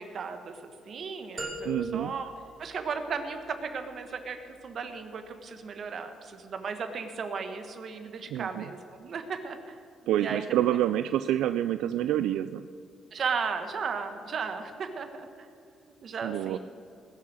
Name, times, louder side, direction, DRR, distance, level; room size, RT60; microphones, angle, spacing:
voice 1, 0.0-2.3 2.6-9.8 10.2-10.8 13.1-15.5 16.0-16.6, right 5 dB, 55° right, 7 dB, 1.5 m, -35 dB
sound 1, 1.4-3.4, equal, 30° right, 2.8 m, -40 dB
voice 2, 1.7-2.1 8.3-8.6 10.1-12.7 16.2-16.6, right 12 dB, 90° right, 12 dB, 0.3 m, -27 dB
20.0 x 7.4 x 6.3 m, 2.4 s
cardioid pair, 90°, 0 cm